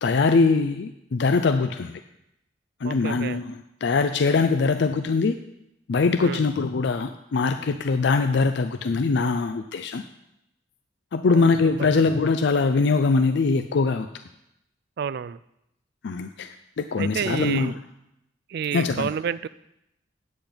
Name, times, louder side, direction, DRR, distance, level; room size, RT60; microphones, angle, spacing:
voice 1, 0.0-2.0 2.8-3.5 3.8-5.4 5.9-10.0 11.1-14.1 16.0-17.7 18.7-19.1, left 4 dB, 65° left, 8 dB, 0.4 m, -22 dB
voice 2, 2.8-3.4 6.2-6.5 11.3-11.5 11.8-12.0 15.0-15.4 17.0-17.7 18.5-19.5, right 7 dB, 60° right, 18 dB, 0.3 m, -30 dB
8.7 x 8.2 x 5.1 m, 0.84 s
head